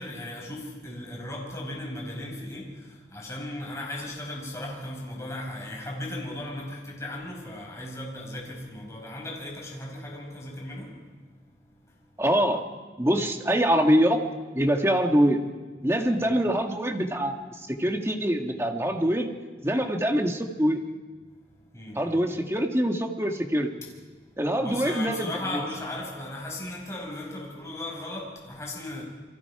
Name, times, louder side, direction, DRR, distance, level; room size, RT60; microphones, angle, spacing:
voice 1, 0.0-12.2 16.2-16.4 21.3-22.2 24.1-29.0, left 1 dB, 15° left, 5.4 m, -37 dB
voice 2, 12.2-12.6 13.0-14.2 14.5-15.4 15.8-19.3 19.6-20.8 21.9-23.7 24.4-25.3, equal, 15° right, 1.8 m, -24 dB
29.0 x 24.0 x 4.9 m
head